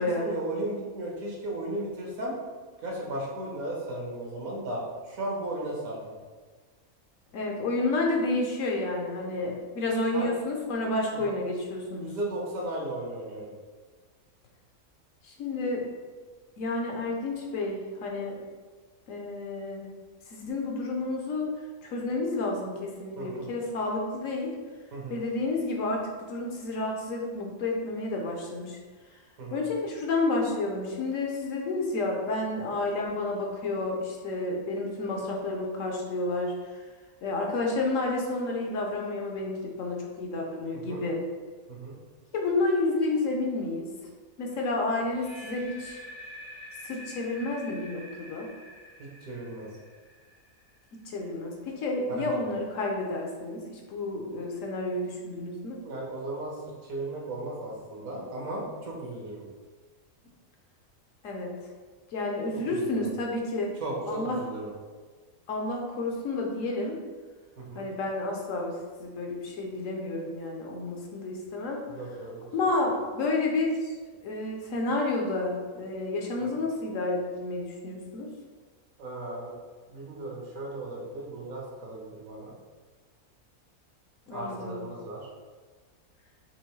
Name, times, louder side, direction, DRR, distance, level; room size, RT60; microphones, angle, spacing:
voice 1, 0.0-2.3 2.8-6.1 10.1-10.3 11.1-11.3 11.9-13.5 23.2-23.5 24.9-25.2 29.4-29.6 40.7-41.0 41.7-41.9 49.0-49.7 52.2-52.4 55.8-56.6 56.9-59.4 62.5-63.1 63.8-64.7 67.6-67.9 71.9-72.4 76.5-76.6 79.0-79.5 79.9-82.5 84.3-85.3, right 1 dB, 70° right, -3 dB, 1.4 m, -36 dB
voice 2, 7.3-12.1 15.2-15.8 16.6-18.4 19.1-19.9 20.3-21.5 21.8-24.5 25.1-28.8 29.5-36.8 37.2-41.2 42.3-43.9 44.4-46.0 46.8-48.5 50.9-55.8 61.2-61.5 62.1-63.7 64.1-64.4 65.5-67.0 67.7-68.7 69.0-71.8 72.5-73.9 74.2-78.3 84.3-84.8, left 2 dB, 65° left, 0 dB, 1.0 m, -30 dB
sound 1, 45.0-51.0, equal, 50° left, 0.6 m, -47 dB
4.4 x 3.0 x 3.1 m, 1.4 s
omnidirectional pair, 1.5 m